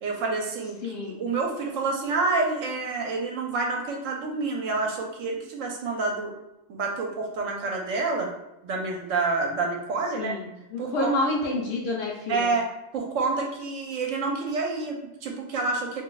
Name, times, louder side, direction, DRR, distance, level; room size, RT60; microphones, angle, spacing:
voice 1, 0.0-6.3 6.7-8.3 8.6-10.3 10.8-11.1 12.3-12.7 12.9-16.0, right 3 dB, 75° right, 0 dB, 1.0 m, -28 dB
voice 2, 0.8-1.2 10.1-12.5, left 2 dB, 60° left, -1 dB, 0.7 m, -28 dB
2.5 x 2.2 x 3.8 m, 0.90 s
omnidirectional pair, 1.4 m